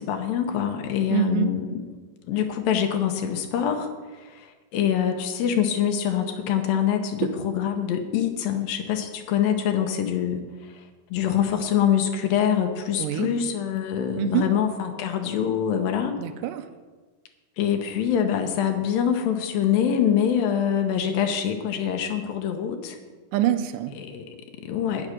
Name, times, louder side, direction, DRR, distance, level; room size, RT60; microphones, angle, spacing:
voice 1, 0.1-1.6 2.3-3.7 4.7-5.1 5.4-7.0 7.4-9.0 9.3-10.4 11.1-16.1 17.6-22.8 24.7-25.0, left 9 dB, 80° left, 5 dB, 2.5 m, -24 dB
voice 2, 1.1-1.5 7.2-7.4 13.0-13.4 14.2-14.6 16.2-16.7 23.3-24.0, right 11 dB, 80° right, 8 dB, 2.1 m, -25 dB
9.5 x 6.6 x 6.1 m, 1.3 s
omnidirectional pair, 4.1 m